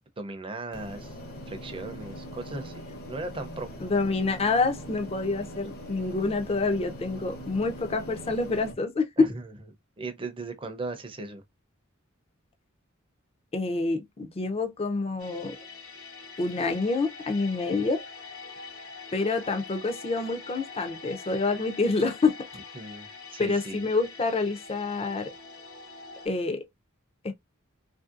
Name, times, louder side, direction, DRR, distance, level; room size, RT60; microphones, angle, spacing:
voice 1, 0.2-1.2 1.5-3.7 9.2-9.5 10.0-11.4 22.7-23.8, right 2 dB, 25° right, 0.5 m, -37 dB
sound 1, 0.7-8.7, equal, 50° left, 0.9 m, -41 dB
voice 2, 3.8-9.3 13.5-15.5 16.4-18.0 19.1-22.3 23.4-25.3 26.2-26.6 27.2-27.3, left 3 dB, 30° left, 0.5 m, -27 dB
sound 2, 15.2-26.3, left 4 dB, 75° left, 1.1 m, -44 dB
3.1 x 2.6 x 2.4 m
head